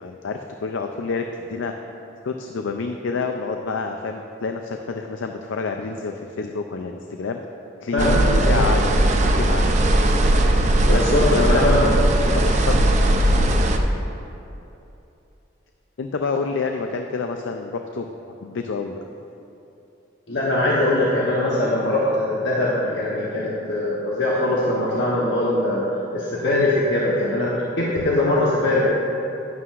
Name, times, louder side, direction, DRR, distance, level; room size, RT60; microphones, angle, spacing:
voice 1, 0.0-1.7 2.2-7.4 7.8-8.8 9.1-9.7 10.9-13.1 16.0-18.1 18.4-19.0, left 4 dB, 85° left, 5 dB, 0.4 m, -28 dB
voice 2, 7.9-8.6 10.9-11.9 20.3-25.8 26.1-28.9, left 1 dB, 65° left, -6 dB, 1.1 m, -21 dB
sound 1, 8.0-13.8, right 1 dB, 35° right, 0.5 m, -18 dB
11.0 x 9.6 x 2.5 m, 2.9 s
head